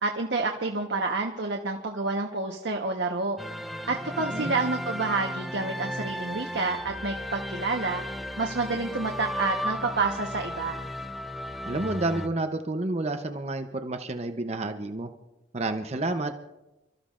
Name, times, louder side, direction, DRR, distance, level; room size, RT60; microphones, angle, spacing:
voice 1, 0.0-3.4 3.9-8.0 8.4-10.9, right 3 dB, 80° right, 1 dB, 1.1 m, -29 dB
sound 1, 3.4-12.3, equal, ahead, 0.4 m, -35 dB
voice 2, 4.2-4.5 11.7-15.1 15.5-16.3, right 2 dB, 35° right, 7 dB, 0.7 m, -30 dB
29.5 x 13.5 x 2.5 m, 0.98 s
head